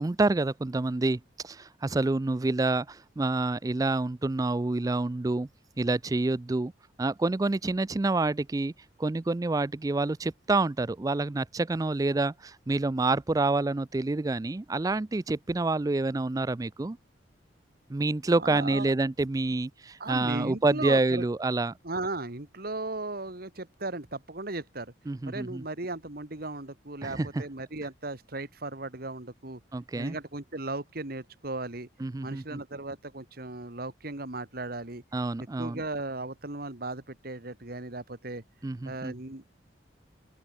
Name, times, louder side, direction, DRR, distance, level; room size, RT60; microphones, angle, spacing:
voice 1, 0.0-5.5 5.8-6.7 7.0-8.7 9.0-17.0 17.9-21.7 25.1-25.6 27.0-27.4 29.7-30.2 32.0-32.6 35.1-35.8 38.6-39.1, right 2 dB, 20° right, 0.4 m, -28 dB
voice 2, 18.4-18.9 20.0-21.3 21.8-24.9 25.3-29.6 30.0-31.9 32.2-35.0 35.6-38.4 38.8-39.5, right 2 dB, 55° right, 2.1 m, -36 dB
open air
head